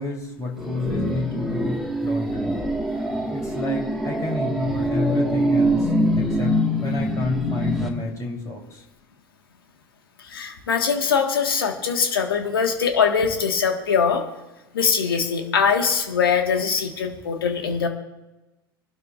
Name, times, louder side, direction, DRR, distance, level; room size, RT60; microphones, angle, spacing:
voice 1, 0.0-2.5 3.3-5.9 6.2-8.6, left 2 dB, 25° left, -2 dB, 3.6 m, -29 dB
sound 1, 0.6-7.9, equal, ahead, 1.9 m, -24 dB
voice 2, 10.2-14.2 14.7-17.9, left 6 dB, 70° left, 5 dB, 1.7 m, -22 dB
24.0 x 12.0 x 2.6 m, 1.0 s
figure-of-eight pair, 75°, 12 cm